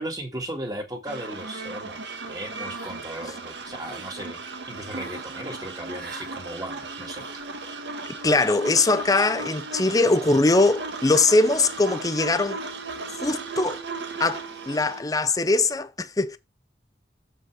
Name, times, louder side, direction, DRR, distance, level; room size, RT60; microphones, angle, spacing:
voice 1, 0.0-4.4 4.7-7.2, right 1 dB, 20° right, 1.7 m, -36 dB
sound 1, 1.0-15.0, right 3 dB, 85° right, 1.3 m, -36 dB
sound 2, 2.7-3.2 3.6-4.1 4.9-5.3 5.9-6.4 7.1-7.5, right 3 dB, 60° right, 1.6 m, -43 dB
voice 2, 8.2-12.6 13.2-13.8 14.2-16.4, left 3 dB, 20° left, 0.6 m, -21 dB
7.3 x 5.3 x 4.7 m
head